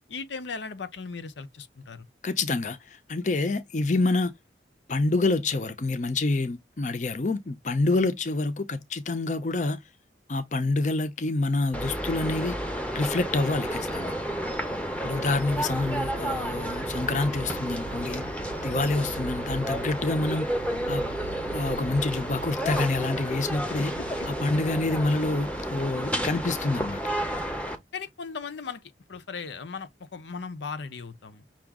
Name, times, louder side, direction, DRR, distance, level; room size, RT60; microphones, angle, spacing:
voice 1, 0.1-2.1 23.8-24.3 27.9-28.8 29.1-31.4, left 5 dB, 85° left, 0.7 m, -37 dB
voice 2, 2.2-4.3 4.9-9.8 10.3-12.5 12.9-14.1 15.0-18.2 18.6-20.5 20.9-21.1 21.5-23.9 24.3-27.0, left 2 dB, 45° left, 0.5 m, -27 dB
sound 1, 11.7-27.8, equal, 5° left, 0.8 m, -31 dB
sound 2, 15.8-25.0, right 6 dB, 75° right, 0.3 m, -44 dB
5.9 x 2.4 x 3.6 m
head